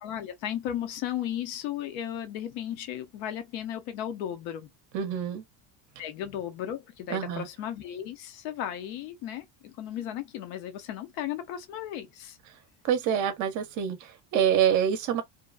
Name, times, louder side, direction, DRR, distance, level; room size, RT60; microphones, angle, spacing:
voice 1, 0.0-4.7 6.0-12.4, left 10 dB, 65° left, 0.7 m, -35 dB
voice 2, 4.9-5.4 7.1-7.5 12.8-15.2, right 9 dB, 40° right, 0.6 m, -26 dB
2.8 x 2.2 x 2.3 m
cardioid pair, 165°, 47 cm